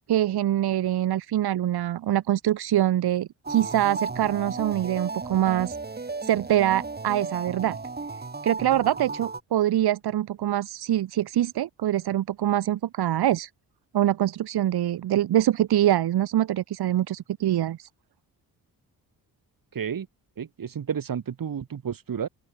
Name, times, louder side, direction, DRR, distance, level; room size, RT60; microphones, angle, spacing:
voice 1, 0.1-5.8 6.2-7.8 8.4-13.5 13.9-17.9, right 12 dB, 80° right, 1.7 m, -24 dB
sound 1, 3.4-9.4, right 3 dB, 25° right, 3.1 m, -35 dB
voice 2, 19.7-20.1 20.4-22.3, right 8 dB, 60° right, 7.3 m, -31 dB
open air
cardioid pair, 90°, 38 cm